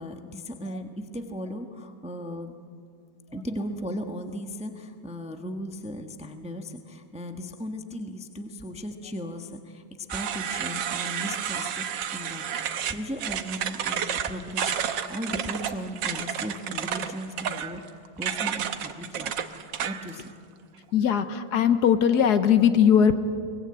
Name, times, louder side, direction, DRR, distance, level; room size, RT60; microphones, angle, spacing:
voice 1, 0.0-2.5 3.3-12.5 12.8-17.8 18.2-19.3 19.8-20.3, equal, 5° right, 5 dB, 0.9 m, -36 dB
sound 1, 10.1-20.2, right 9 dB, 80° right, 1.6 m, -31 dB
voice 2, 20.9-23.2, left 8 dB, 65° left, 10 dB, 1.4 m, -20 dB
23.0 x 20.5 x 8.8 m, 2.3 s
omnidirectional pair, 1.9 m